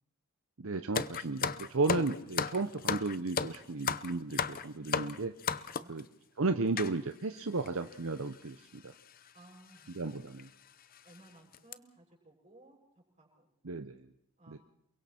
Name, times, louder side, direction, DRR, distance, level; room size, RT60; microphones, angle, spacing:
voice 1, 0.6-5.3 5.9-6.0 6.4-8.9 9.9-10.5 13.6-14.0 14.5-14.6, right 3 dB, 65° right, 8 dB, 0.9 m, -34 dB
sound 1, 0.9-6.0 6.8-6.9 7.7-7.8 7.9-8.1 9.1-9.3 9.8-9.9 10.4-10.5 10.9-11.2 11.5-11.7, left 6 dB, 40° left, 0.7 m, -34 dB
voice 2, 5.8-6.1 9.3-10.1 11.0-12.8 13.2-13.5 14.4-14.6, right 1 dB, 30° right, -2 dB, 7.2 m, -58 dB
28.5 x 23.0 x 4.4 m, 0.72 s
head